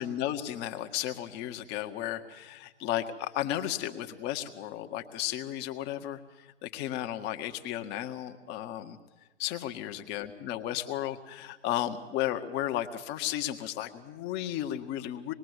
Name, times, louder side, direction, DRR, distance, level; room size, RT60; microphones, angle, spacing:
voice 1, 0.0-9.0 9.4-15.3, left 12 dB, 30° left, 7 dB, 1.7 m, -34 dB
26.0 x 21.0 x 8.3 m, 1.2 s
figure-of-eight pair, 110°, 35 cm